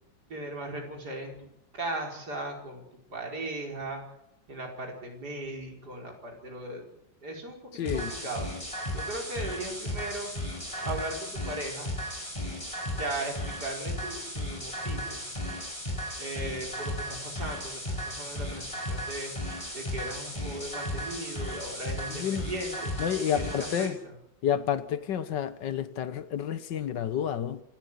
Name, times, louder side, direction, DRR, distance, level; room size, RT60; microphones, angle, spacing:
voice 1, 0.3-1.5 1.7-2.8 3.1-4.0 4.5-6.9 7.2-7.6 7.9-8.5 8.9-10.3 10.8-11.9 13.0-15.2 16.2-19.3 19.7-22.9 23.3-24.1, right 1 dB, 60° right, 5.4 m, -37 dB
voice 2, 7.7-8.1 22.1-22.4 23.0-24.0 24.4-27.6, left 9 dB, 70° left, 1.7 m, -30 dB
sound 1, 7.9-23.9, left 1 dB, 15° left, 6.6 m, -35 dB
26.5 x 14.0 x 8.3 m
omnidirectional pair, 2.0 m